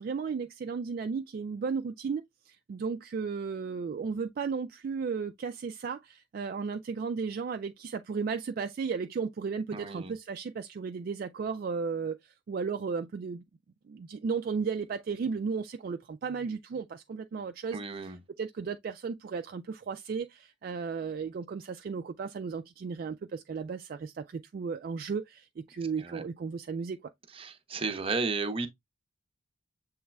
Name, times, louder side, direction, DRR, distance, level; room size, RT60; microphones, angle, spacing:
voice 1, 0.0-13.4 13.9-17.8 18.4-27.0, right 5 dB, 50° right, 0.3 m, -34 dB
voice 2, 9.7-10.1 17.7-18.2 26.0-26.2 27.3-28.7, right 4 dB, 30° right, 0.7 m, -33 dB
7.1 x 3.1 x 2.2 m
head